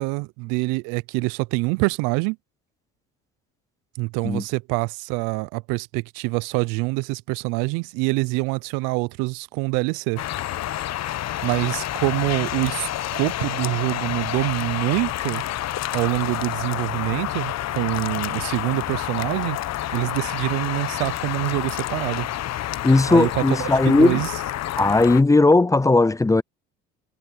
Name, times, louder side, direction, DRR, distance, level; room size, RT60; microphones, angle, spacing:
voice 1, 0.0-2.4 4.0-10.2 11.4-15.4 15.9-19.6 19.9-22.3 23.1-24.3, right 26 dB, 75° right, 0.6 m, -25 dB
sound 1, 10.2-25.2, left 13 dB, 55° left, 1.1 m, -29 dB
voice 2, 22.8-24.2 24.8-26.4, left 2 dB, 10° left, 0.5 m, -17 dB
hypercardioid pair, 70°, 32 cm